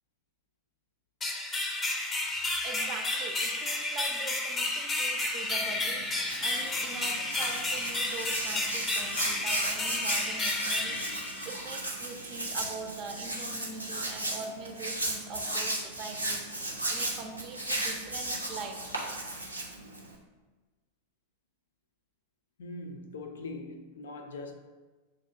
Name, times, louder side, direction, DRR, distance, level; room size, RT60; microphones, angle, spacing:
sound 1, 1.2-11.9, left 2 dB, 15° left, 0.6 m, -32 dB
voice 1, 2.6-18.8, right 4 dB, 35° right, 0.5 m, -42 dB
Hands, 5.5-20.2, right 1 dB, 85° right, 0.6 m, -35 dB
voice 2, 22.6-24.5, left 2 dB, 65° left, 0.4 m, -41 dB
7.3 x 2.6 x 2.6 m
figure-of-eight pair, 90°, 0 cm